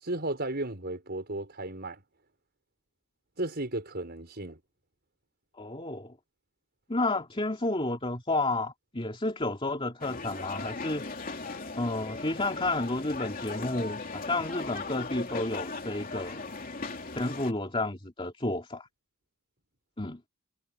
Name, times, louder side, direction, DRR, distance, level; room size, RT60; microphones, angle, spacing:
voice 1, 0.0-2.0 3.4-4.6, right 2 dB, 50° right, 5.6 m, -34 dB
voice 2, 5.6-6.1 6.9-11.0 11.8-16.4 17.1-18.9 20.0-20.2, left 2 dB, 25° left, 2.8 m, -31 dB
sound 1, 10.0-17.5, left 3 dB, 40° left, 3.1 m, -38 dB
head